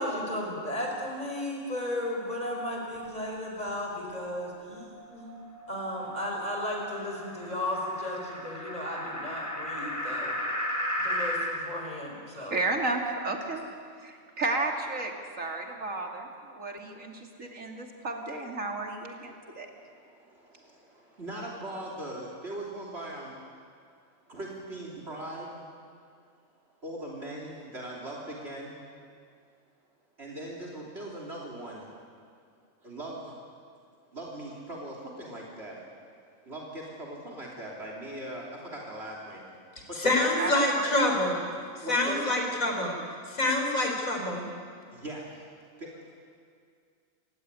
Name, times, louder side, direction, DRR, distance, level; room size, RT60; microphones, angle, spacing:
voice 1, 0.0-5.3 5.7-10.4 11.0-12.6, left 1 dB, 30° left, 0 dB, 5.5 m, -34 dB
sound 1, 4.7-11.5, left 1 dB, 10° left, 6.6 m, -35 dB
voice 2, 12.4-13.6 14.0-19.7 40.4-40.9, right 2 dB, 70° right, 2 dB, 3.1 m, -33 dB
voice 3, 19.3-23.4 24.3-25.7 26.8-28.8 30.2-31.9 32.8-33.4 34.1-35.8 36.4-39.4 39.8-40.3 41.8-42.4 44.7-46.2, right 1 dB, 50° right, -2 dB, 3.4 m, -40 dB
voice 4, 40.0-41.4 41.9-42.9 43.3-44.4, left 1 dB, 75° left, 2 dB, 4.6 m, -26 dB
27.5 x 16.0 x 9.8 m, 2.2 s
omnidirectional pair, 1.4 m